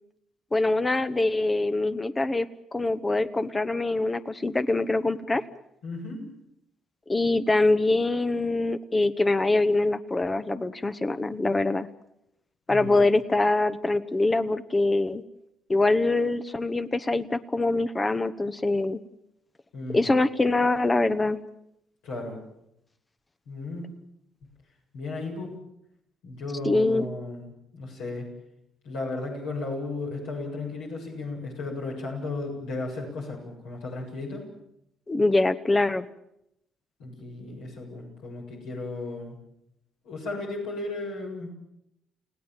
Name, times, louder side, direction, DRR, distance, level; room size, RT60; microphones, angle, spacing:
voice 1, 0.5-5.4 7.1-11.9 12.7-15.2 15.7-19.0 19.9-21.4 26.6-27.1 35.1-36.1, left 2 dB, 25° left, 12 dB, 1.1 m, -24 dB
voice 2, 5.8-6.2 12.7-13.0 19.7-20.1 22.0-22.4 23.5-23.9 24.9-25.5 26.2-28.3 28.8-34.4 37.0-39.4 40.0-41.5, left 2 dB, 65° left, -1 dB, 7.3 m, -35 dB
30.0 x 18.0 x 7.5 m, 0.82 s
figure-of-eight pair, 45°, 0 cm